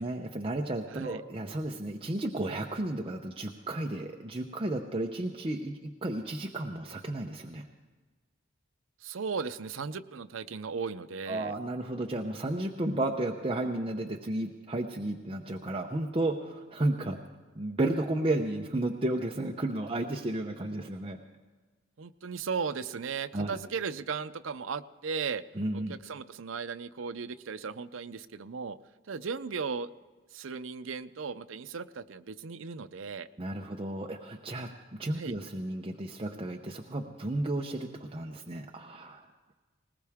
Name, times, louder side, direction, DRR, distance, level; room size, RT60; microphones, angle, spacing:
voice 1, 0.0-7.7 11.3-17.2 17.5-21.2 23.3-23.6 25.5-26.0 33.4-34.7 35.0-39.3, right 1 dB, 25° right, 1 dB, 0.7 m, -33 dB
voice 2, 9.0-11.5 22.0-25.4 25.7-28.8 29.1-29.9 30.3-33.3 35.2-35.4, right 5 dB, 75° right, 12 dB, 0.6 m, -36 dB
20.0 x 19.5 x 3.6 m, 1.3 s
head